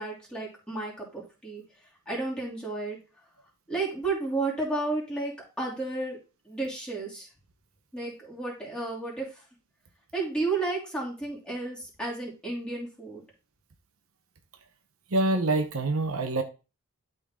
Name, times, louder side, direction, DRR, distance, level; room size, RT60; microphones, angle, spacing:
voice 1, 0.0-1.6 2.1-3.0 3.7-6.2 6.4-7.3 7.9-9.4 10.1-13.2, right 3 dB, 5° left, 2.9 m, -32 dB
voice 2, 15.1-16.4, right 2 dB, 70° right, 0.9 m, -25 dB
12.0 x 4.0 x 3.7 m
head